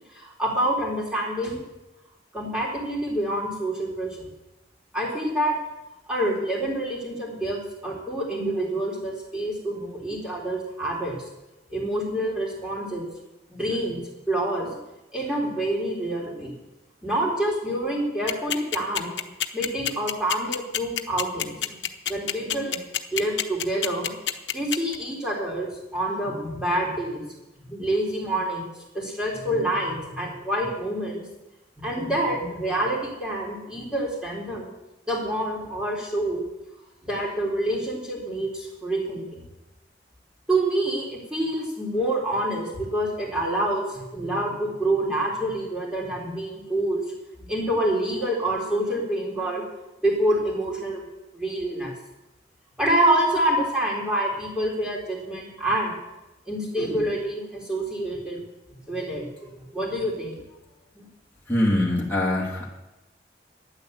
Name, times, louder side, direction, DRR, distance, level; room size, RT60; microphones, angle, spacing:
voice 1, 0.1-1.6 2.3-4.2 4.9-5.6 6.1-11.2 11.7-13.1 13.5-14.8 15.1-16.5 17.0-19.2 19.5-21.8 22.1-22.8 23.1-24.1 24.5-27.2 27.6-28.7 28.9-31.2 31.8-34.7 35.1-36.4 37.0-39.4 40.5-47.0 47.5-49.7 50.0-51.0 51.3-51.9 52.8-56.0 56.5-58.4 58.9-60.4 60.9-61.0, right 1 dB, 5° right, -4 dB, 3.8 m, -27 dB
sound 1, 18.3-24.9, left 11 dB, 85° left, 0.9 m, -26 dB
voice 2, 61.5-62.7, left 1 dB, 10° left, -5 dB, 2.5 m, -23 dB
12.0 x 10.0 x 7.9 m, 0.99 s
head